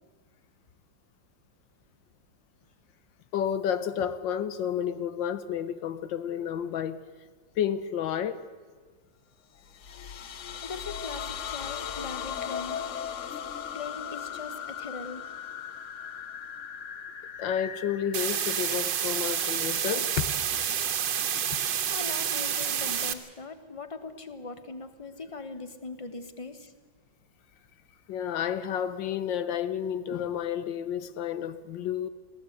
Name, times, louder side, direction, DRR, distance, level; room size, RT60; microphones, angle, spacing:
voice 1, 3.3-7.0 7.6-8.4 17.4-20.3 28.1-32.1, left 9 dB, 85° left, 1.6 m, -31 dB
sound 1, 9.6-20.2, left 8 dB, 55° left, 1.0 m, -38 dB
voice 2, 10.6-12.9 13.7-15.3 21.9-26.7, left 4 dB, 20° left, 1.1 m, -40 dB
sound 2, 18.1-23.1, right 9 dB, 80° right, 1.8 m, -29 dB
22.5 x 16.0 x 8.0 m
omnidirectional pair, 2.0 m